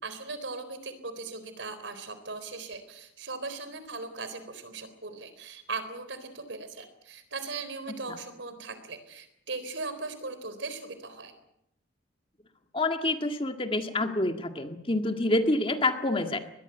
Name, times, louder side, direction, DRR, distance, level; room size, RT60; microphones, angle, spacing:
voice 1, 0.0-11.3, right 3 dB, 75° right, 11 dB, 4.0 m, -39 dB
voice 2, 12.7-16.4, left 2 dB, 30° left, 6 dB, 1.8 m, -27 dB
23.0 x 20.0 x 8.1 m, 0.80 s
head